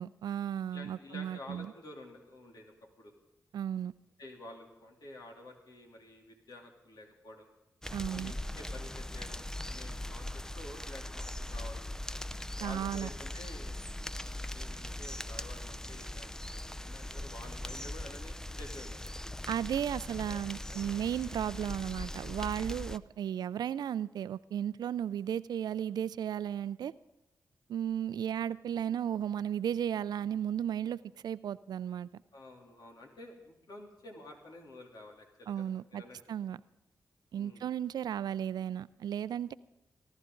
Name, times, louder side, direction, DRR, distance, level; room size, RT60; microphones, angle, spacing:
voice 1, 0.0-1.7 3.5-3.9 7.9-8.3 12.6-13.1 19.5-26.9 27.7-31.0 31.2-32.1 35.5-36.0 36.3-36.6 37.3-39.5, right 9 dB, 80° right, 18 dB, 0.4 m, -34 dB
voice 2, 0.7-3.1 4.2-7.5 8.1-11.9 12.6-13.8 14.1-19.0 20.2-20.4 20.7-21.0 22.7-22.9 32.3-36.2 37.3-37.6, left 1 dB, 75° left, 0 dB, 3.1 m, -50 dB
sound 1, 7.8-23.0, left 1 dB, 10° left, 0.6 m, -40 dB
23.5 x 12.5 x 3.9 m, 0.93 s
cardioid pair, 45°, 7 cm